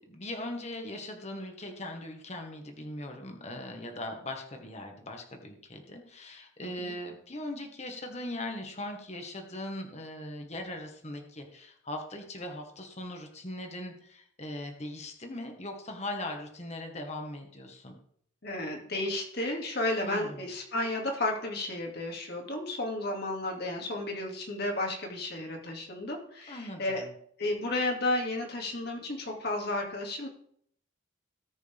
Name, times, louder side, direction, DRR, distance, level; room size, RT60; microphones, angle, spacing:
voice 1, 0.1-18.0 20.0-20.4 26.5-27.1, left 1 dB, 30° left, 3 dB, 1.6 m, -40 dB
voice 2, 6.6-6.9 18.4-27.0 27.4-30.3, left 2 dB, 50° left, 1 dB, 2.4 m, -32 dB
18.5 x 6.3 x 3.6 m, 0.65 s
head